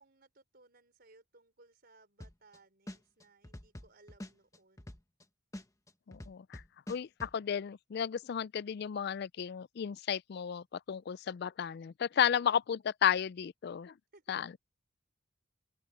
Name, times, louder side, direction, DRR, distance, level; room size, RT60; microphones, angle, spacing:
voice 1, 0.0-5.0 14.1-14.5, right 2 dB, 50° right, 4.9 m, -63 dB
sound 1, 2.2-2.6 2.9-5.2 5.5-7.3, left 1 dB, 15° left, 1.1 m, -46 dB
voice 2, 6.1-6.6 6.9-13.9 14.3-14.5, left 8 dB, 55° left, 0.3 m, -33 dB
open air
head